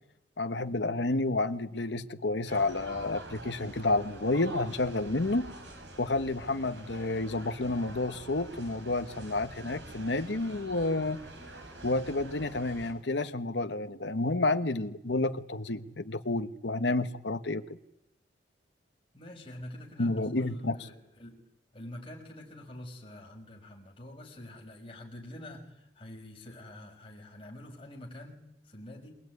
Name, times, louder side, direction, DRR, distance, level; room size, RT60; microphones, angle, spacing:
voice 1, 0.4-5.5 6.0-11.2 11.8-17.6 20.0-20.8, left 2 dB, 80° left, 1.2 m, -30 dB
sound 1, 2.5-12.9, right 1 dB, 75° right, 5.5 m, -46 dB
voice 2, 19.1-21.4 21.7-29.1, left 1 dB, 30° left, 5.8 m, -46 dB
27.0 x 17.5 x 9.7 m
head